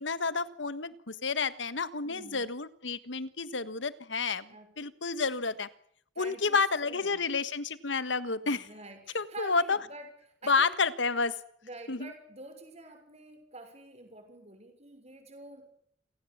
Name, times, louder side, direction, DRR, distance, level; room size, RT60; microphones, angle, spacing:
voice 1, 0.0-5.7 6.2-8.7 9.1-9.8 10.5-11.4 11.9-12.1, left 4 dB, 75° left, 15 dB, 1.5 m, -30 dB
voice 2, 2.0-2.5 4.5-4.7 6.2-7.3 8.4-10.1 10.4-10.7 11.6-15.7, right 2 dB, 35° right, 6 dB, 6.2 m, -48 dB
28.0 x 18.0 x 8.7 m, 0.67 s
head